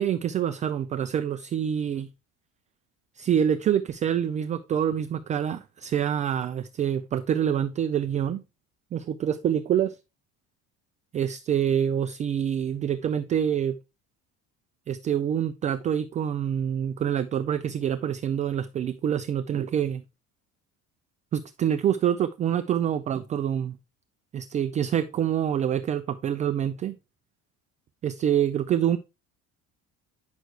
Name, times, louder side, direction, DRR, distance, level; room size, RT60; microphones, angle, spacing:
voice 1, 0.0-2.1 3.2-8.4 8.9-10.0 11.1-13.8 14.9-20.0 21.3-23.8 24.3-27.0 28.0-29.0, right 9 dB, 25° right, 0.3 m, -26 dB
9.2 x 6.4 x 3.2 m
cardioid pair, 175°, 30 cm